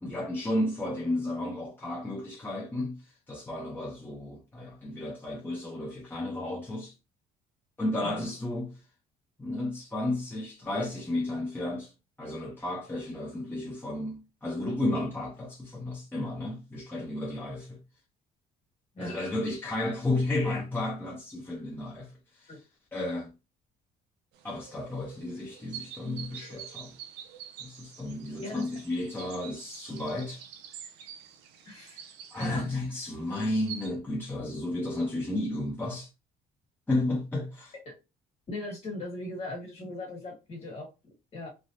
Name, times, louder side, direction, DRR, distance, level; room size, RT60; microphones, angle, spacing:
voice 1, 0.0-6.9 7.8-8.7 9.4-11.9 12.2-17.8 19.0-22.5 22.9-23.3 24.4-26.9 27.6-30.4 32.3-36.1 36.9-37.7, left 1 dB, 10° left, 0.7 m, -33 dB
sound 1, 24.3-33.9, right 8 dB, 90° right, 0.5 m, -47 dB
voice 2, 31.6-32.7 37.8-37.9 38.5-41.5, left 2 dB, 40° left, 1.6 m, -39 dB
3.3 x 2.2 x 2.6 m
cardioid pair, 110°, 17 cm